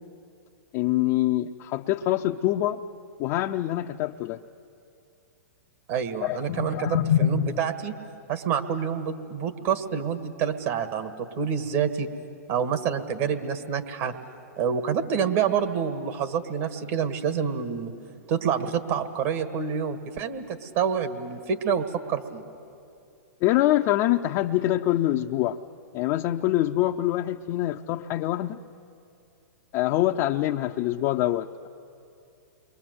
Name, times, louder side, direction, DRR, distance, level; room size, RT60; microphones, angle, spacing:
voice 1, 0.7-2.8 3.2-4.4 6.2-7.5 23.4-25.6 25.9-28.6 29.7-31.7, left 14 dB, 40° left, 3 dB, 0.6 m, -25 dB
voice 2, 5.9-7.9 8.3-11.1 11.4-12.1 12.5-14.1 14.6-17.9 18.3-22.4, right 7 dB, 50° right, 8 dB, 1.7 m, -27 dB
29.0 x 22.5 x 8.0 m, 2.6 s
hypercardioid pair, 125°, 9 cm